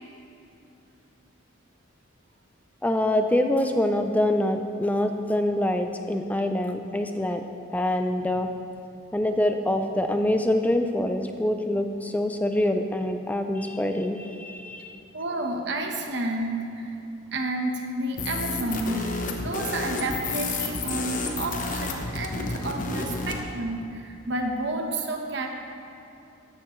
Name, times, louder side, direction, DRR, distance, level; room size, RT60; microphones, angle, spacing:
voice 1, 2.8-7.4 7.7-8.5 9.1-15.0, left 1 dB, 5° left, 6 dB, 0.4 m, -25 dB
voice 2, 15.1-16.9 17.3-19.1 19.4-25.5, right 2 dB, 55° right, 2 dB, 1.1 m, -30 dB
sound 1, 18.2-23.4, left 3 dB, 40° left, 1.0 m, -30 dB
14.0 x 11.0 x 3.2 m, 2.7 s
head